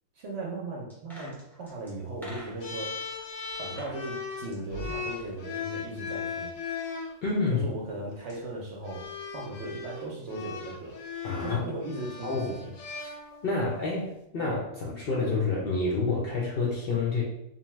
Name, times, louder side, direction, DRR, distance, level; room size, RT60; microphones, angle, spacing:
voice 1, 0.2-3.0 3.6-6.5 7.5-11.0 11.4-12.7, right 2 dB, 65° right, -2 dB, 0.7 m, -37 dB
sound 1, 0.9-2.9 3.5-4.0 4.3-5.7 5.9-6.0, equal, 5° left, 0.4 m, -47 dB
sound 2, 2.6-7.1 8.1-8.4 8.9-13.7, left 5 dB, 80° left, 1.0 m, -38 dB
voice 2, 7.2-7.7 11.2-11.6 12.2-12.5 13.4-17.2, left 3 dB, 60° left, -4 dB, 0.6 m, -28 dB
2.7 x 2.2 x 3.1 m, 0.79 s
omnidirectional pair, 1.4 m